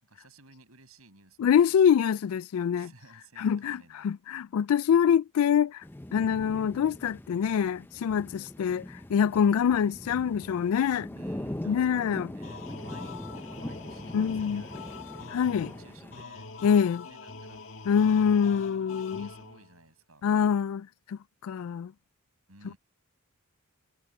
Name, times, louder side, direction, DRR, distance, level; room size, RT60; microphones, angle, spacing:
voice 1, 0.0-1.8 2.7-4.1 11.1-15.0 15.6-16.5 17.1-17.6 17.9-20.2 22.5-22.8, right 3 dB, 75° right, 7.4 m, -56 dB
voice 2, 1.4-2.9 3.4-5.8 6.1-11.1 11.7-12.3 14.1-14.6 15.3-15.7 16.6-17.1 17.9-19.3 20.2-21.9, left 7 dB, 80° left, 0.3 m, -25 dB
sound 1, 5.8-16.2, left 1 dB, 10° left, 0.5 m, -42 dB
sound 2, 12.4-19.8, left 4 dB, 65° left, 1.8 m, -44 dB
head